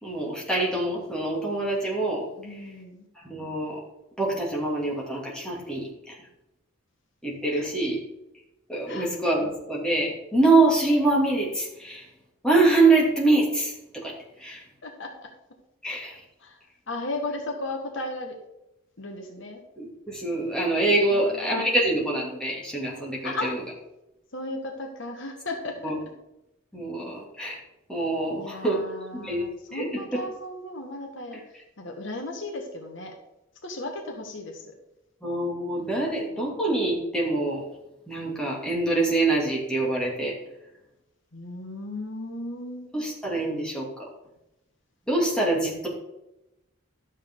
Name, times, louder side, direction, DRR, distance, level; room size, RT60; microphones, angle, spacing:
voice 1, 0.0-2.3 3.2-3.8 4.2-6.2 7.2-8.0 8.7-12.1 12.4-14.1 14.4-14.6 15.8-16.2 19.8-23.5 25.8-25.9 26.7-27.6 27.9-28.8 29.1-29.4 29.7-30.2 35.2-37.6 38.1-40.4 42.9-44.0 45.1-45.9, right 2 dB, 5° left, -4 dB, 2.7 m, -25 dB
voice 2, 2.4-3.1 7.5-7.7 8.9-9.1 14.8-15.1 16.4-16.6 16.9-18.3 19.0-19.6 21.1-21.6 23.2-23.5 24.3-25.9 28.4-31.4 31.8-33.1 33.6-34.7 35.8-36.0 36.3-36.4 41.3-42.9, left 2 dB, 60° left, 3 dB, 1.4 m, -35 dB
12.0 x 7.3 x 3.8 m, 0.91 s
head